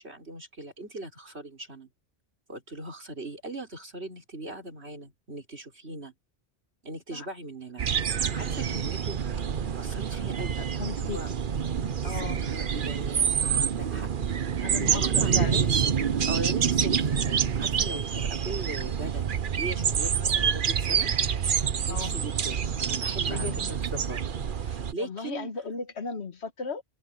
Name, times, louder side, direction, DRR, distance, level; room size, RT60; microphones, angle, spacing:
voice 1, 0.0-1.9 2.5-6.1 6.8-9.2 9.6-11.3 12.0-14.1 14.9-15.7 16.0-19.2 19.6-21.1 21.9-24.2 24.5-25.5, right 2 dB, 75° right, 5.3 m, -40 dB
sound 1, 7.8-24.9, right 7 dB, 55° right, 1.0 m, -27 dB
voice 2, 10.6-11.2 12.0-12.4 14.6-15.7 21.9-22.2 23.2-23.7 25.0-26.8, left 5 dB, 85° left, 1.7 m, -36 dB
open air
omnidirectional pair, 1.1 m